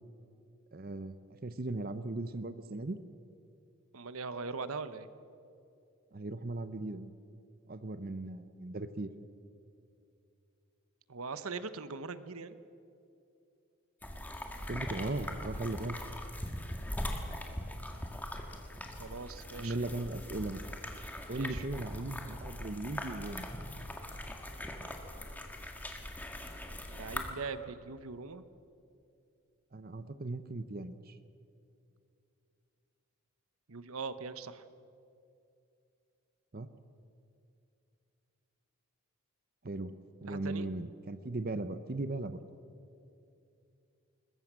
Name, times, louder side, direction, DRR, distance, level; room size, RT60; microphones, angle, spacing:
voice 1, 0.7-3.0 6.1-7.1 7.7-9.1 14.7-16.0 19.6-20.6 21.3-23.5 29.7-31.2 36.5-36.7 39.6-39.9 40.2-42.4, right 2 dB, 40° right, 12 dB, 0.7 m, -38 dB
voice 2, 3.9-5.1 11.1-12.6 19.0-20.0 21.3-21.6 26.9-28.4 33.7-34.6 40.3-40.7, right 4 dB, 75° right, 12 dB, 1.0 m, -41 dB
sound 1, 14.0-27.3, left 1 dB, 5° left, 1.7 m, -41 dB
21.0 x 20.5 x 7.5 m, 2.6 s
head